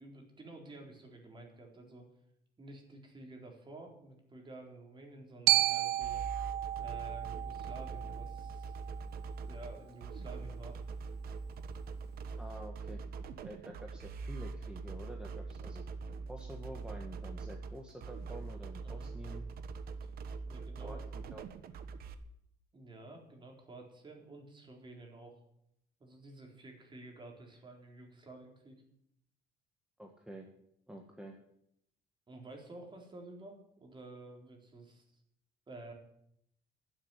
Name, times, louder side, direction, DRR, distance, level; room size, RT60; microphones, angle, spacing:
voice 1, 0.0-2.1 2.6-6.2 6.8-8.7 9.5-10.8 18.8-19.1 20.4-21.0 22.7-25.4 26.0-28.8 32.3-35.2 35.7-35.9, right 2 dB, 30° right, 1 dB, 4.1 m, -51 dB
Glockenspiel, 5.5-9.6, right 16 dB, 80° right, 0.7 m, -33 dB
sound 1, 6.0-22.1, right 4 dB, 65° right, 1.2 m, -43 dB
voice 2, 12.4-13.0 13.4-15.8 16.3-19.5 20.8-21.0 21.3-21.4 30.0-30.5 30.9-31.4, right 1 dB, 5° right, 1 dB, 1.7 m, -48 dB
12.5 x 7.8 x 10.0 m, 0.75 s
cardioid pair, 110°, 17 cm